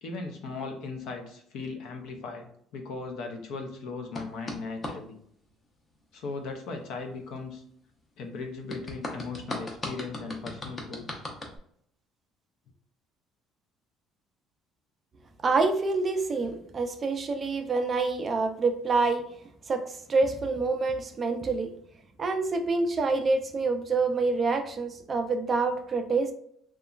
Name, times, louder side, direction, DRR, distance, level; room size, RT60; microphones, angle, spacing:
voice 1, 0.0-5.2 6.1-7.6 8.2-11.2, left 4 dB, 70° left, 4 dB, 0.5 m, -38 dB
sound 1, 4.2-5.0 8.7-11.6, left 1 dB, 25° left, 0.5 m, -37 dB
voice 2, 15.4-19.2 19.7-21.7 22.2-26.3, right 3 dB, 30° right, 6 dB, 0.3 m, -27 dB
2.9 x 2.2 x 2.3 m, 0.67 s
cardioid pair, 140°, 0 cm